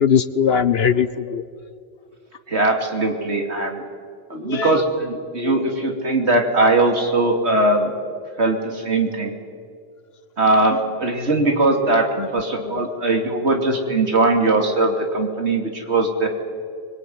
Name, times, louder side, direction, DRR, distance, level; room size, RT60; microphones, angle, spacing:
voice 1, 0.0-1.4 4.3-4.8 5.4-5.5 12.2-12.3, left 7 dB, 60° left, 14 dB, 1.1 m, -20 dB
voice 2, 2.5-3.8 4.3-7.9 8.4-9.3 10.4-12.1 12.3-16.3, right 2 dB, 65° right, 3 dB, 3.1 m, -20 dB
25.0 x 22.5 x 9.5 m, 2.3 s
omnidirectional pair, 1.2 m